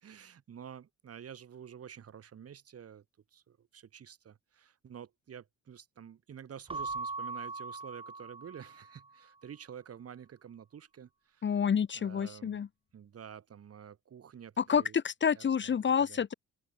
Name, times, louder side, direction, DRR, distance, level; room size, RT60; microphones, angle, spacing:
voice 1, 0.0-3.0 3.3-11.5 11.9-12.7 12.9-15.0 15.4-16.2, right 8 dB, 50° right, 2.9 m, -49 dB
Keyboard (musical) / Bell, 6.7-9.1, right 3 dB, 20° right, 1.1 m, -40 dB
voice 2, 11.4-12.7 14.6-16.3, left 7 dB, 40° left, 1.0 m, -28 dB
open air
cardioid pair, 90°, 30 cm